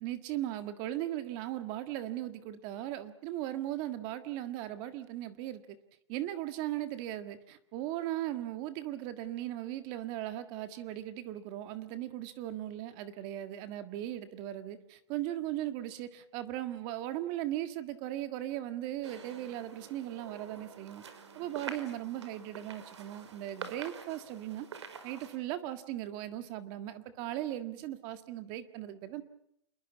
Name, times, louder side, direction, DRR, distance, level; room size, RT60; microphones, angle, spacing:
voice 1, 0.0-5.8 6.1-21.0 21.4-24.7 25.0-29.2, right 13 dB, 30° right, 11 dB, 1.7 m, -38 dB
sound 1, 19.0-25.4, right 6 dB, 75° right, 5.5 m, -47 dB
28.5 x 22.0 x 7.1 m, 0.73 s
hypercardioid pair, 155°, 15 cm